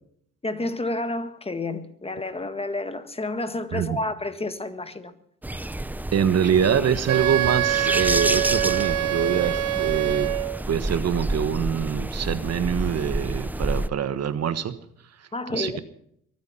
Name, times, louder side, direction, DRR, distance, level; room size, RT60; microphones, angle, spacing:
voice 1, 0.4-5.1 15.3-15.8, left 2 dB, 20° left, 1.7 m, -30 dB
sound 1, 5.4-13.9, right 1 dB, 5° right, 0.6 m, -29 dB
voice 2, 6.1-10.3 10.7-14.8 15.5-15.8, right 8 dB, 55° right, 1.4 m, -24 dB
Wind instrument woodwind instrument, 7.1-10.6, right 12 dB, 80° right, 1.0 m, -25 dB
23.0 x 9.4 x 5.8 m
cardioid pair, 90°, 30 cm